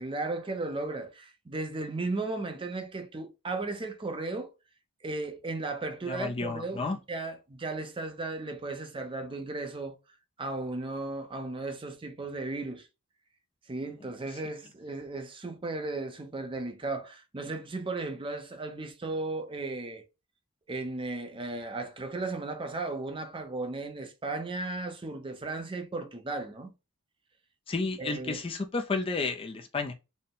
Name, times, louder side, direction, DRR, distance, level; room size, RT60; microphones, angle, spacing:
voice 1, 0.0-4.5 5.0-10.0 10.4-12.9 13.7-20.0 20.7-26.7 28.0-28.4, right 2 dB, 25° right, 0.6 m, -35 dB
voice 2, 6.1-7.0 27.7-29.9, left 3 dB, 25° left, 0.4 m, -31 dB
4.1 x 2.1 x 3.6 m
head